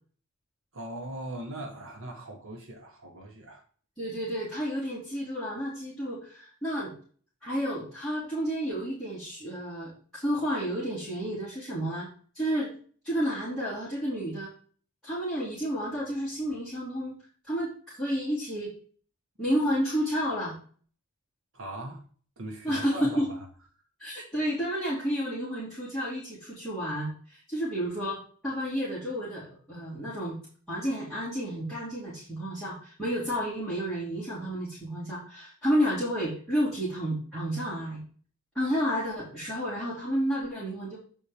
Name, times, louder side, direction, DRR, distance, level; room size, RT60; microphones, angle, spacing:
voice 1, 0.7-3.6 21.5-22.0 22.4-23.5, right 1 dB, 60° right, 1.5 m, -40 dB
voice 2, 4.0-6.9 7.4-12.1 12.3-12.7 13.0-14.5 15.0-17.2 17.5-18.7 19.4-20.5 22.6-23.3 24.0-30.4 30.7-38.0 38.5-41.0, equal, ahead, 2.7 m, -31 dB
7.7 x 4.3 x 5.0 m
head